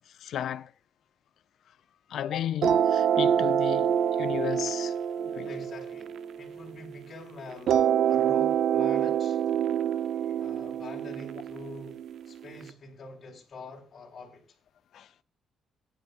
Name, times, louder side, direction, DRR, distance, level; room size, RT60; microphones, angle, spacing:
voice 1, 0.1-0.7 2.1-5.0 5.3-5.5 14.9-15.1, left 10 dB, 65° left, 0.5 m, -34 dB
sound 1, 2.6-7.0 7.7-12.6, right 9 dB, 65° right, 0.7 m, -26 dB
voice 2, 5.4-9.5 10.4-12.0 12.3-14.4, left 2 dB, 40° left, 4.0 m, -45 dB
23.5 x 10.0 x 2.4 m
cardioid pair, 115°, 0 cm